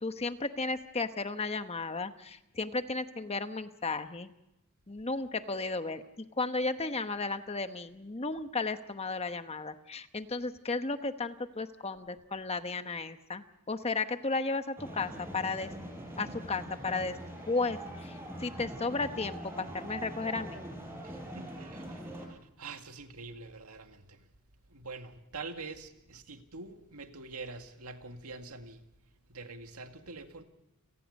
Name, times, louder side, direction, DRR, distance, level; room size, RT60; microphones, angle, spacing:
voice 1, 0.0-4.3 4.9-15.7 16.2-17.2 17.5-20.6, left 3 dB, 30° left, 1.0 m, -34 dB
sound 1, 14.8-22.3, right 1 dB, 10° right, 5.7 m, -43 dB
voice 2, 21.0-24.3 24.7-28.9 29.3-30.4, right 3 dB, 85° right, 2.1 m, -45 dB
29.5 x 18.5 x 5.4 m
head